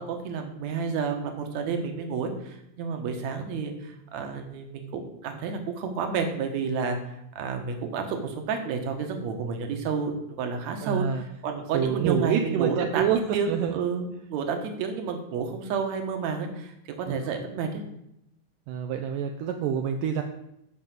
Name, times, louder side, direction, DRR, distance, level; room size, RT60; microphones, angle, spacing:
voice 1, 0.0-7.0 7.4-17.8, right 5 dB, 60° right, 5 dB, 2.5 m, -30 dB
voice 2, 10.8-11.2 11.7-13.8 17.1-17.2 18.7-20.2, right 8 dB, 80° right, 4 dB, 2.3 m, -27 dB
11.5 x 5.4 x 7.7 m, 0.79 s
omnidirectional pair, 3.9 m